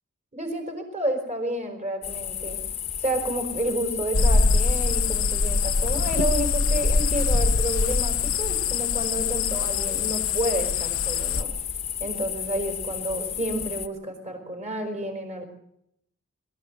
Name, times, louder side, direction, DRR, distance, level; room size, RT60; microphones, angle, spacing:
voice 1, 0.3-2.6 3.0-11.5 12.0-15.5, right 1 dB, 30° right, 5 dB, 4.8 m, -30 dB
sound 1, 2.0-13.9, left 9 dB, 30° left, 1.3 m, -33 dB
sound 2, 4.1-11.4, left 4 dB, 70° left, 0.9 m, -24 dB
23.0 x 14.0 x 7.9 m, 0.75 s
head